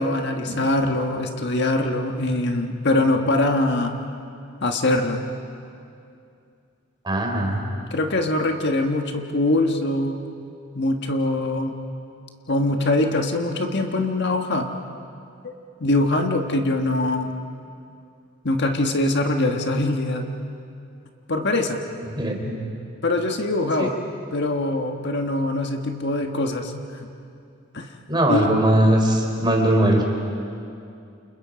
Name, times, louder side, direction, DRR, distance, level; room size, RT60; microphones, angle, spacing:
voice 1, 0.0-4.0 4.6-5.2 7.9-10.2 10.7-11.7 12.5-14.7 15.4-15.5 15.8-17.3 18.4-20.2 21.3-21.8 23.0-24.0 24.3-26.7 27.7-27.9 28.3-28.5, left 2 dB, 60° left, 4 dB, 1.6 m, -23 dB
voice 2, 7.0-7.6 22.1-22.5 23.8-23.9 28.1-30.2, right 1 dB, 25° right, 1 dB, 3.7 m, -20 dB
29.0 x 28.5 x 5.2 m, 2.5 s
head